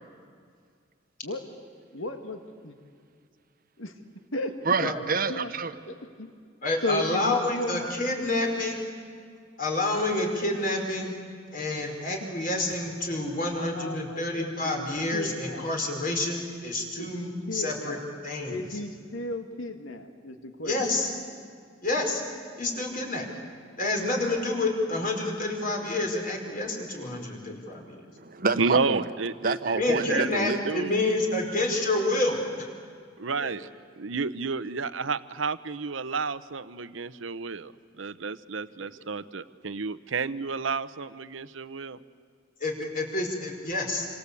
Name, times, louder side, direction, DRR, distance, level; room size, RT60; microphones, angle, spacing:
voice 1, 1.9-2.7 3.8-3.9 4.3-4.6 5.3-5.5 6.2-6.3 6.8-8.5 11.5-11.7 13.5-15.7 17.0-18.0 18.5-20.8, left 1 dB, 85° left, 7 dB, 2.0 m, -35 dB
voice 2, 4.6-5.8 28.2-29.0 29.4-30.6, right 4 dB, 45° right, 10 dB, 1.1 m, -28 dB
voice 3, 6.6-8.8 9.6-11.1 11.5-18.0 18.2-18.8 20.6-21.1 21.8-22.2 22.6-23.3 23.8-28.0 29.8-32.7 33.4-33.5 42.6-44.1, left 2 dB, 45° left, 2 dB, 5.1 m, -28 dB
voice 4, 28.6-30.9 33.2-33.7 34.0-37.7 38.0-42.0, right 4 dB, 75° right, 14 dB, 0.9 m, -31 dB
27.0 x 26.0 x 8.4 m, 2.1 s
head